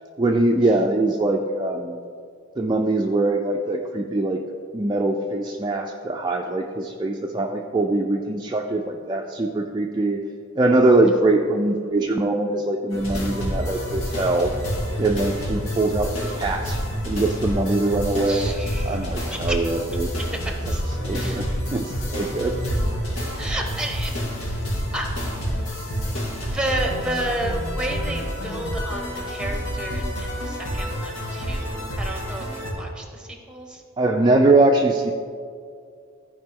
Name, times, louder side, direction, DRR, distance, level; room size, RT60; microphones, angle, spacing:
voice 1, 0.2-2.0 2.6-4.4 4.7-10.2 10.6-14.5 15.0-16.1 16.4-16.8 17.0-18.5 18.9-20.1 21.0-22.6 34.0-35.1, right 2 dB, 20° right, 1 dB, 0.4 m, -22 dB
sound 1, 12.9-32.7, equal, 85° left, 2.3 m, -28 dB
voice 2, 18.2-19.6 20.4-20.8 21.1-21.4 23.4-24.1 24.4-24.6 24.9-25.1 26.4-33.8, right 1 dB, 5° right, 2 dB, 1.0 m, -31 dB
14.0 x 5.1 x 3.7 m, 2.2 s
head